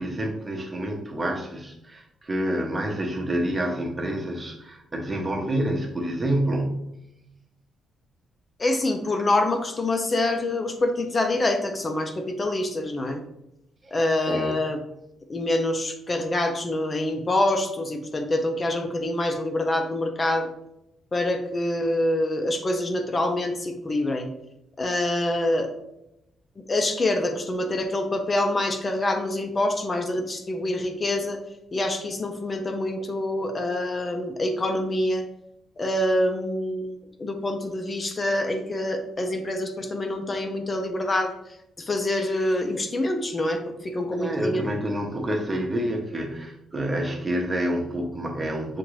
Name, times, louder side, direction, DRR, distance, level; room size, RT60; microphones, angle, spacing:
voice 1, 0.0-6.9 13.8-14.0 14.3-14.6 44.1-48.8, right 1 dB, 25° right, 2 dB, 0.8 m, -28 dB
voice 2, 8.6-13.2 13.9-14.8 15.3-20.5 21.1-24.3 24.8-25.7 26.6-31.4 31.7-35.2 35.8-41.3 41.8-44.6, left 1 dB, 30° left, 5 dB, 0.5 m, -26 dB
5.8 x 2.5 x 3.1 m, 0.85 s
cardioid pair, 110°, 0 cm